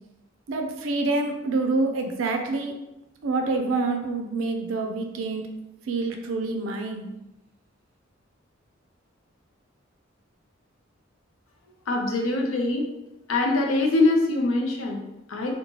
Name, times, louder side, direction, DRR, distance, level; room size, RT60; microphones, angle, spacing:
voice 1, 0.5-2.7 3.2-5.5 5.9-7.1, right 3 dB, 75° right, 4 dB, 0.4 m, -27 dB
voice 2, 11.9-12.9 13.3-15.6, left 2 dB, 85° left, 1 dB, 0.5 m, -23 dB
2.8 x 2.2 x 3.0 m, 0.93 s
head